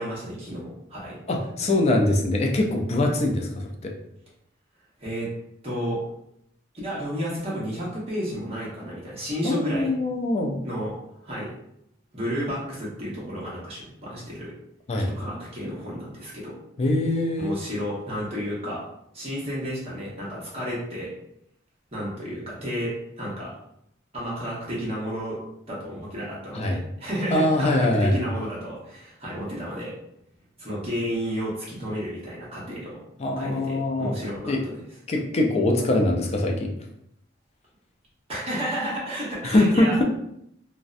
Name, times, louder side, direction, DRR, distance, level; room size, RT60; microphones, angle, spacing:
voice 1, 0.0-1.2 5.0-5.3 5.6-6.0 6.8-9.9 10.6-11.0 11.2-11.6 12.1-14.5 15.1-16.6 17.4-18.8 19.1-21.1 21.9-23.5 24.1-25.4 25.7-29.9 30.6-33.0 33.4-34.7 38.3-40.0, equal, 35° right, -6 dB, 1.0 m, -32 dB
voice 2, 1.3-3.9 9.4-10.6 14.9-15.1 16.8-17.6 26.5-26.8 27.3-28.2 33.2-34.1 34.4-34.6 35.1-36.7 39.4-40.0, left 1 dB, 35° left, 2 dB, 0.3 m, -23 dB
2.5 x 2.1 x 2.4 m, 0.77 s
head